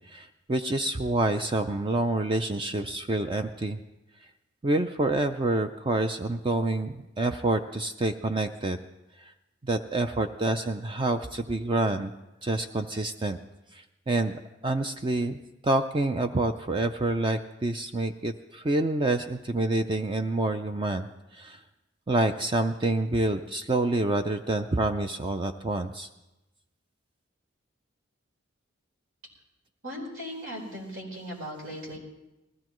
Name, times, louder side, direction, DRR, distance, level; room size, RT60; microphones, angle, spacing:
voice 1, 0.1-3.8 4.6-8.8 9.2-9.3 9.6-12.1 12.4-13.4 13.7-14.3 14.6-15.4 15.6-21.1 21.3-21.6 22.1-26.1, right 2 dB, 25° right, 7 dB, 0.4 m, -27 dB
voice 2, 29.8-32.0, equal, 90° right, -2 dB, 4.4 m, -38 dB
20.0 x 15.0 x 3.1 m, 0.97 s
head